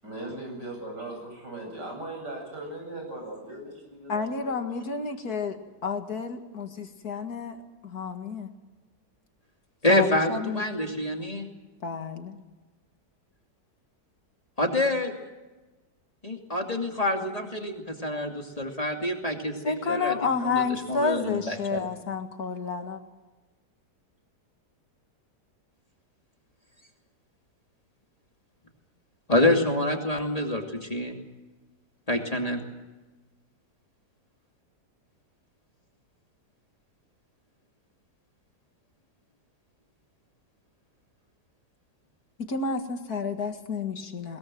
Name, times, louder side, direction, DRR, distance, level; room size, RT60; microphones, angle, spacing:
voice 1, 0.0-4.8, right 2 dB, 85° right, 2 dB, 8.8 m, -39 dB
voice 2, 4.1-7.6 7.8-8.5 9.9-10.6 11.8-12.4 19.6-23.0 42.5-44.4, left 5 dB, 60° left, 6 dB, 2.3 m, -30 dB
voice 3, 9.8-11.5 14.6-15.1 16.2-20.2 20.4-21.9 29.3-31.1 32.1-32.6, left 1 dB, 20° left, 2 dB, 2.7 m, -27 dB
21.5 x 21.0 x 7.6 m, 1.2 s
omnidirectional pair, 1.8 m